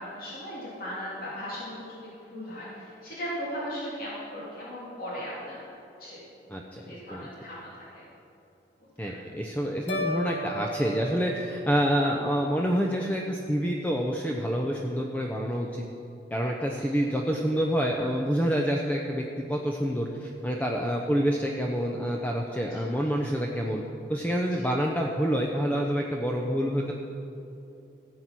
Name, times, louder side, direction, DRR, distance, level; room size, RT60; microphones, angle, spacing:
voice 1, 0.0-5.6 6.0-6.2 6.7-8.1 9.1-9.2 16.7-16.8 20.7-20.9 22.7-22.8, equal, 50° left, -7 dB, 3.2 m, -38 dB
voice 2, 6.5-6.8 7.1-7.3 9.0-15.8 16.3-23.8 24.1-26.9, equal, 10° left, 0 dB, 0.7 m, -27 dB
sound 1, 9.9-12.2, equal, 65° left, 1.8 m, -34 dB
15.0 x 8.4 x 6.1 m, 2.9 s
head